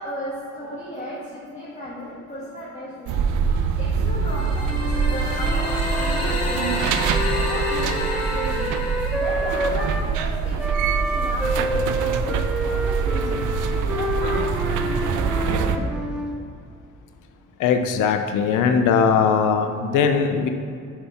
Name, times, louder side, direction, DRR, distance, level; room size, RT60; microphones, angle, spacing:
voice 1, 0.0-16.2, left 1 dB, 25° left, -7 dB, 1.7 m, -35 dB
sound 1, 3.1-15.8, right 6 dB, 80° right, 0.6 m, -24 dB
sound 2, 4.3-10.2, left 2 dB, 55° left, 1.5 m, -31 dB
Wind instrument woodwind instrument, 4.6-10.1 10.6-16.4, equal, 5° right, 0.6 m, -29 dB
voice 2, 17.6-20.5, left 6 dB, 85° left, 7 dB, 0.6 m, -20 dB
7.1 x 5.4 x 5.6 m, 2.3 s
cardioid pair, 90°, 30 cm